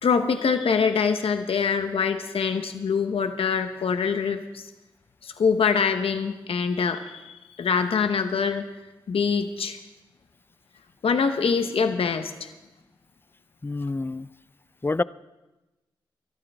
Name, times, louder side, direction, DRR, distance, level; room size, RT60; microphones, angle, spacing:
voice 1, 0.0-4.7 5.2-8.6 9.1-9.8 11.0-12.5, left 6 dB, 80° left, 0.8 m, -24 dB
voice 2, 13.6-14.3 14.8-15.0, left 3 dB, 25° left, 0.4 m, -27 dB
23.0 x 12.5 x 3.4 m
cardioid pair, 45°, 10 cm